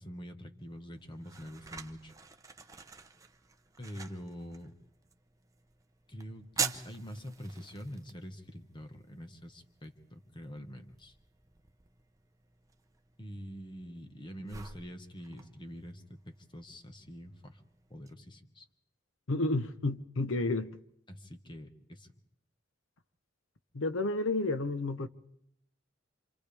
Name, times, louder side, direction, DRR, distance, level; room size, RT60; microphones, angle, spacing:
voice 1, 0.0-2.1 3.8-4.7 6.1-11.1 13.2-17.6 17.9-18.7 21.1-22.1, equal, 25° left, 1.4 m, -45 dB
sound 1, 0.6-18.1, right 5 dB, 15° right, 0.8 m, -46 dB
voice 2, 19.3-20.7 23.7-25.1, left 2 dB, 90° left, 0.9 m, -31 dB
28.0 x 27.0 x 3.5 m
head